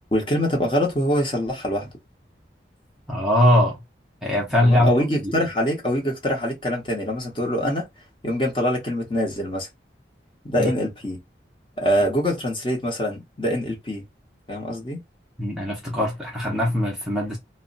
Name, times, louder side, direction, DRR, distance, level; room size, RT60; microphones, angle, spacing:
voice 1, 0.1-1.9 4.6-7.9 8.2-9.7 10.4-11.2 11.8-14.0 14.5-15.0, equal, 30° left, 0.9 m, -24 dB
voice 2, 3.1-3.8 4.2-4.9 5.2-5.3 10.6-10.7 15.4-17.4, left 1 dB, ahead, 0.6 m, -21 dB
2.1 x 2.1 x 3.8 m
head